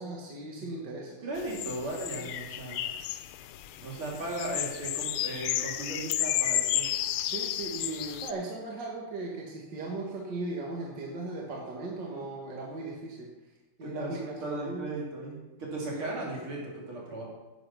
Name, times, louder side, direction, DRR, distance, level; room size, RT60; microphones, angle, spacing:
voice 1, 0.0-1.2 7.2-13.3 13.8-14.9 15.9-16.1, right 2 dB, 55° right, -2 dB, 2.1 m, -37 dB
voice 2, 1.2-2.8 3.8-7.0 13.8-17.2, right 2 dB, 70° right, -3 dB, 3.9 m, -37 dB
sound 1, 1.4-8.3, left 12 dB, 80° left, 1.5 m, -32 dB
10.5 x 7.7 x 6.1 m, 1.1 s
omnidirectional pair, 2.4 m